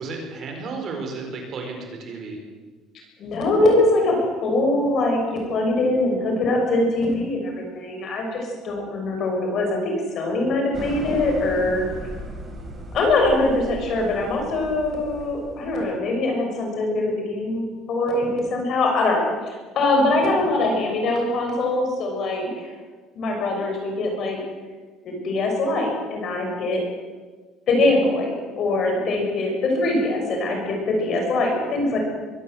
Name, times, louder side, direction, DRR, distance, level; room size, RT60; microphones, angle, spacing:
voice 1, 0.0-2.4, right 3 dB, 35° right, 3 dB, 4.5 m, -33 dB
voice 2, 3.2-11.8 12.9-22.7 23.1-24.4 25.0-26.8 27.7-32.0, left 2 dB, 40° left, 2 dB, 6.3 m, -23 dB
sound 1, 10.7-15.9, right 1 dB, 20° right, 4.0 m, -36 dB
23.0 x 17.5 x 7.8 m, 1.4 s
cardioid pair, 180°, 0 cm